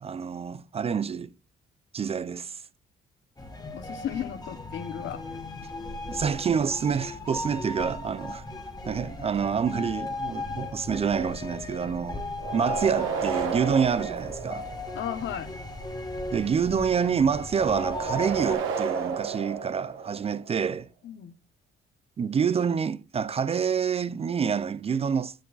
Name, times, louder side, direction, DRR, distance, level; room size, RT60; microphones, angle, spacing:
voice 1, 0.0-1.3 1.9-2.6 6.1-8.4 8.9-12.2 12.5-14.7 16.3-20.9 22.2-25.3, right 6 dB, 30° right, 0.3 m, -27 dB
sound 1, 3.4-18.5, left 2 dB, 20° left, 1.3 m, -37 dB
voice 2, 3.7-5.2 14.9-15.5 21.0-21.3, left 9 dB, 70° left, 0.9 m, -34 dB
sound 2, 12.4-15.1 17.7-20.5, right 6 dB, 85° right, 1.3 m, -32 dB
10.0 x 7.0 x 2.4 m
cardioid pair, 90°, 20 cm